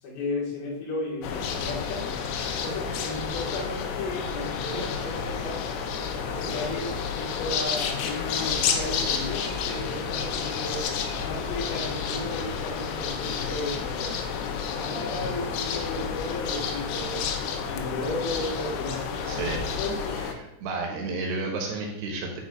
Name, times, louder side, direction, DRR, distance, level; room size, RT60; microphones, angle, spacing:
voice 1, 0.0-2.1 2.6-10.9 11.2-14.2 14.8-17.2 17.7-20.2, left 2 dB, 60° left, -5 dB, 3.0 m, -34 dB
sound 1, 1.2-20.3, left 6 dB, 85° left, 2.3 m, -30 dB
voice 2, 19.3-19.6 20.2-22.4, right 3 dB, 75° right, 0 dB, 2.8 m, -32 dB
9.6 x 4.8 x 2.4 m, 0.84 s
omnidirectional pair, 5.3 m